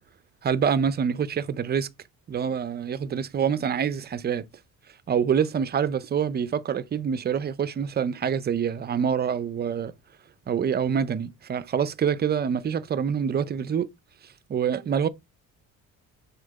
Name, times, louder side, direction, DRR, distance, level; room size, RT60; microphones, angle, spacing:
voice 1, 0.4-1.9 2.3-4.5 5.1-9.9 10.5-13.9 14.5-15.1, right 7 dB, 30° right, 0.5 m, -26 dB
6.6 x 4.4 x 4.0 m
cardioid pair, 130°, 35 cm